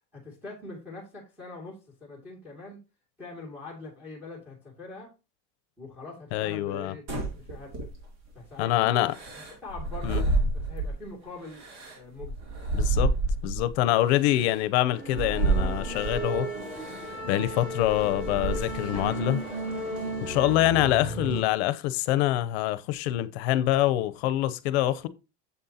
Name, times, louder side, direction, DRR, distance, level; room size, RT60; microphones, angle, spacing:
voice 1, 0.1-2.8 3.2-5.1 5.8-7.0 7.4-7.7 8.3-8.9 9.6-10.3 10.5-11.7 11.9-12.5, left 3 dB, 5° right, 2.3 m, -43 dB
voice 2, 6.3-6.9 8.6-9.1 10.0-10.2 12.7-13.1 13.4-16.5 17.3-19.4 20.2-25.1, left 14 dB, 60° left, 0.7 m, -25 dB
sound 1, 7.1-8.3 9.1-11.0 11.5-13.7 14.4-14.5 15.1-16.2 16.8-17.1 17.5-18.9, right 3 dB, 55° right, 2.5 m, -29 dB
sound 2, 14.9-21.4, right 1 dB, 20° right, 3.4 m, -34 dB
7.6 x 7.3 x 2.8 m
supercardioid pair, 170°, 36 cm